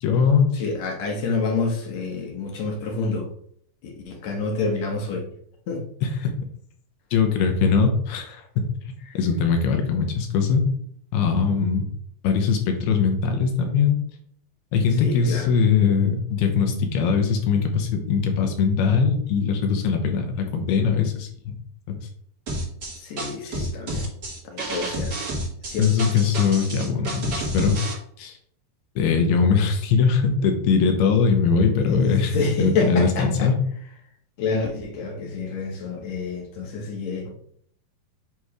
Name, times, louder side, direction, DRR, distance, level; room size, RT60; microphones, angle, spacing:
voice 1, 0.0-0.5 6.0-6.1 7.1-8.4 9.1-10.7 11.1-11.9 12.2-14.0 14.7-21.5 23.4-23.7 25.8-27.8 28.2-28.4 29.0-33.6, left 5 dB, 85° left, 4 dB, 3.0 m, -21 dB
voice 2, 0.5-3.3 3.8-5.3 5.7-5.9 15.0-15.5 23.0-24.0 24.5-25.1 25.7-25.9 31.9-33.5 34.4-37.3, left 3 dB, 65° left, 1 dB, 1.8 m, -28 dB
sound 1, 22.5-27.9, right 1 dB, 55° right, 1.1 m, -30 dB
7.8 x 3.1 x 4.9 m, 0.64 s
omnidirectional pair, 4.4 m